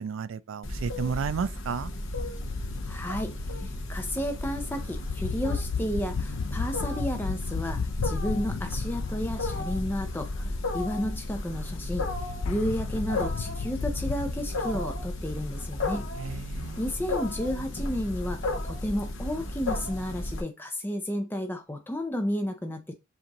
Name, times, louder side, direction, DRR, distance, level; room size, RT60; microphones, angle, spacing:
voice 1, 0.0-1.9 16.2-16.8, right 6 dB, 60° right, 0.3 m, -32 dB
Wild animals, 0.6-20.4, left 2 dB, 60° left, 0.8 m, -34 dB
sound 1, 2.4-14.3, left 5 dB, 80° left, 0.4 m, -35 dB
voice 2, 2.9-12.1 12.4-16.1 16.8-22.9, equal, 10° left, 0.5 m, -32 dB
7.1 x 2.6 x 2.9 m
head